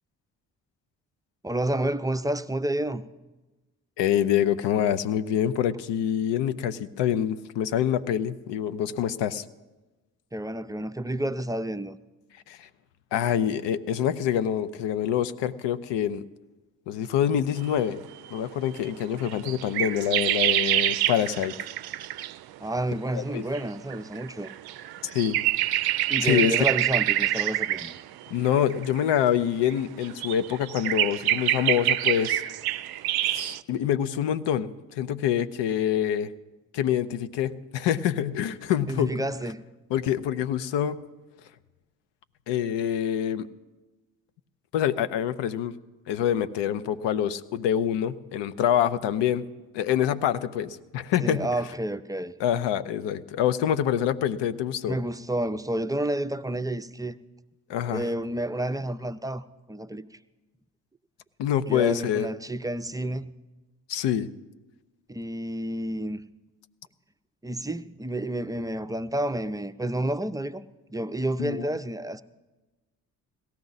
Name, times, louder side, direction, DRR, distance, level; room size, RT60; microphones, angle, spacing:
voice 1, 1.4-3.1 10.3-12.0 22.6-24.5 26.1-27.9 38.9-39.6 51.2-52.3 54.9-57.2 57.9-60.1 61.7-63.3 65.1-66.2 67.4-70.6 70.9-72.2, right 1 dB, 10° right, 0.5 m, -30 dB
voice 2, 4.0-9.4 12.5-12.7 13.1-16.2 16.9-18.0 18.3-21.5 23.1-23.4 25.0-25.4 26.2-26.5 28.3-32.4 33.3-36.3 36.7-39.1 39.9-41.0 42.5-43.5 44.7-45.7 46.1-49.4 49.7-51.5 52.4-55.0 57.7-58.1 61.4-62.3 63.9-64.3 71.4-71.7, left 10 dB, 70° left, 0.7 m, -26 dB
sound 1, 17.7-17.8 18.2-18.4 18.8-22.4 23.5-23.6 23.9-29.2 29.7-33.6, right 13 dB, 60° right, 0.5 m, -26 dB
17.5 x 13.5 x 4.0 m
hypercardioid pair, 45°, 44 cm